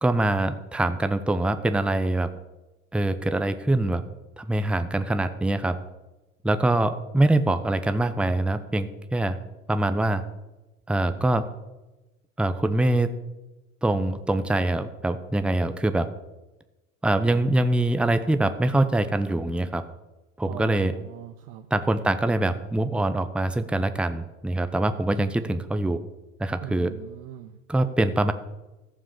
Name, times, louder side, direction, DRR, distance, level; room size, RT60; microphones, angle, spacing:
voice 1, 0.0-2.3 2.9-4.0 4.4-5.8 6.4-9.4 9.7-10.2 10.9-11.5 12.4-13.1 13.8-16.1 17.0-19.8 20.4-20.9 21.7-26.0 26.4-26.9 27.7-28.3, right 2 dB, ahead, 10 dB, 0.8 m, -24 dB
voice 2, 20.4-21.7 26.6-27.6, right 11 dB, 70° right, 6 dB, 0.9 m, -41 dB
14.5 x 7.3 x 6.9 m, 1.1 s
hypercardioid pair, 70°, 42 cm